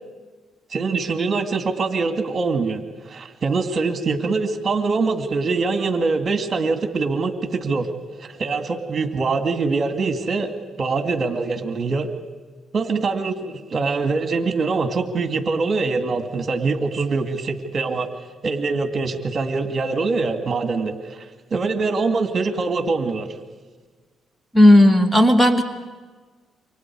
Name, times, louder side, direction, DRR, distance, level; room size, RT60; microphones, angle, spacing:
voice 1, 0.7-7.9 8.2-10.5 10.8-12.1 12.7-18.1 18.4-21.2 21.5-23.3, right 4 dB, 40° right, 7 dB, 2.4 m, -23 dB
voice 2, 24.5-25.6, left 1 dB, ahead, 7 dB, 2.0 m, -13 dB
28.5 x 25.0 x 4.8 m, 1.4 s
cardioid pair, 90°, 0 cm